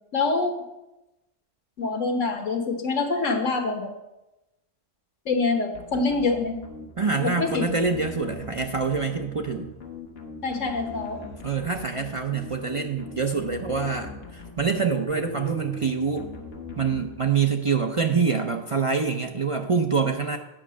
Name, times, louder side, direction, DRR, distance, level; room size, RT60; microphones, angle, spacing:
voice 1, 0.1-0.6 1.8-3.9 5.2-6.6 7.2-7.7 10.4-11.2, left 3 dB, 80° left, 5 dB, 1.5 m, -25 dB
sound 1, 5.7-17.6, left 4 dB, 55° left, 1.4 m, -40 dB
voice 2, 7.0-9.7 11.4-16.3 16.8-20.4, right 5 dB, 50° right, 4 dB, 0.4 m, -25 dB
8.9 x 5.6 x 6.3 m, 0.98 s
omnidirectional pair, 1.3 m